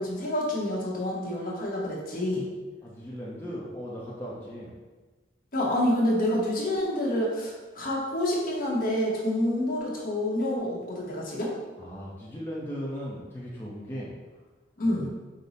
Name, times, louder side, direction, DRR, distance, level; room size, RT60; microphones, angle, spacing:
voice 1, 0.0-2.4 5.5-11.5 14.8-15.1, left 1 dB, 50° left, -3 dB, 0.9 m, -28 dB
voice 2, 2.8-4.7 11.8-14.1 14.8-15.1, equal, 10° left, -7 dB, 0.6 m, -37 dB
5.2 x 2.0 x 4.1 m, 1.3 s
head